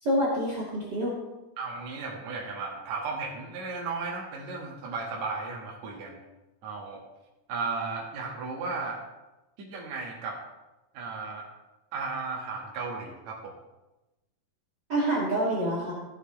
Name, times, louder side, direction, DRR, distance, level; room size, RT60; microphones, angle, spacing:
voice 1, 0.0-1.2 14.9-15.9, right 1 dB, 35° right, -5 dB, 2.2 m, -27 dB
voice 2, 1.6-6.2 6.6-7.0 7.5-9.0 9.6-10.4 10.9-11.5 11.9-13.5, right 4 dB, 60° right, -2 dB, 2.8 m, -35 dB
15.5 x 7.8 x 3.3 m, 1.0 s
omnidirectional pair, 3.9 m